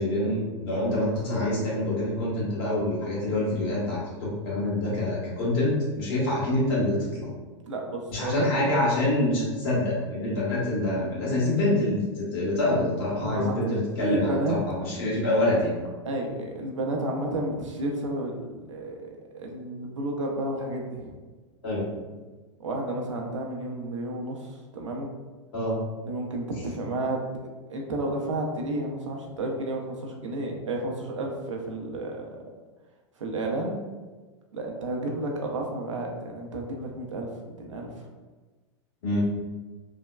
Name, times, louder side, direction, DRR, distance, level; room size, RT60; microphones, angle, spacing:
voice 1, 0.0-7.3 8.1-15.7 21.6-21.8 25.5-25.7 39.0-39.2, left 1 dB, 55° left, -6 dB, 1.5 m, -26 dB
voice 2, 7.6-8.5 13.2-14.6 16.0-21.1 22.6-25.1 26.0-32.4 33.2-33.8 34.5-37.3 37.6-38.1, right 2 dB, 90° right, 0 dB, 0.6 m, -32 dB
3.3 x 2.1 x 2.2 m, 1.3 s
hypercardioid pair, 100°, 15 cm